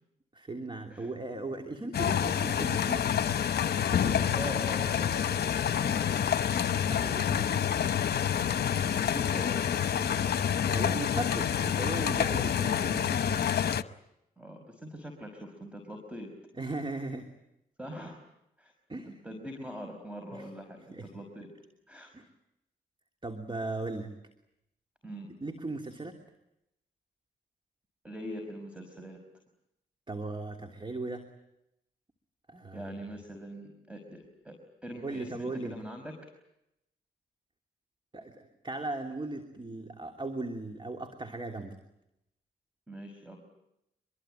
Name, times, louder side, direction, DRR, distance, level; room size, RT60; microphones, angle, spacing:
voice 1, 0.3-3.3 3.6-4.2 6.9-7.8 10.7-13.4 16.6-17.3 18.9-19.2 20.3-20.4 20.9-21.1 22.1-22.3 23.2-24.1 25.4-26.2 30.1-31.3 32.5-32.9 35.0-35.8 38.1-41.8, right 2 dB, 30° right, 5 dB, 3.0 m, -38 dB
sound 1, 1.9-13.8, left 9 dB, 65° left, 1.0 m, -28 dB
voice 2, 4.0-6.4 8.4-9.7 14.4-16.3 17.8-18.2 18.6-18.7 19.1-21.5 21.9-22.1 25.0-25.3 28.0-29.2 32.7-34.6 34.8-36.1 42.9-43.4, equal, 5° right, 5 dB, 5.6 m, -43 dB
25.5 x 22.5 x 9.1 m, 0.84 s
cardioid pair, 55°, 18 cm